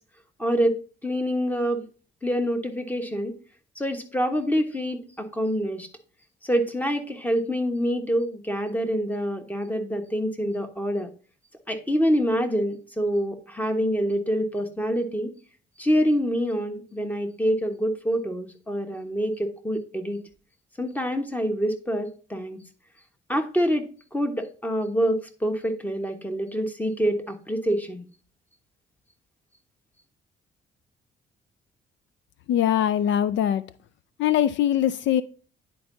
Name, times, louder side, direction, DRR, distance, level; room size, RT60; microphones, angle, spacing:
voice 1, 0.4-1.8 2.2-3.3 3.7-5.9 6.4-11.1 11.7-15.3 15.8-20.2 20.8-22.6 23.3-23.9 24.1-28.1, equal, 10° left, 1.2 m, -26 dB
voice 2, 32.5-33.6 34.2-35.2, left 10 dB, 70° left, 0.4 m, -22 dB
10.0 x 4.5 x 2.6 m
cardioid pair, 90°, 20 cm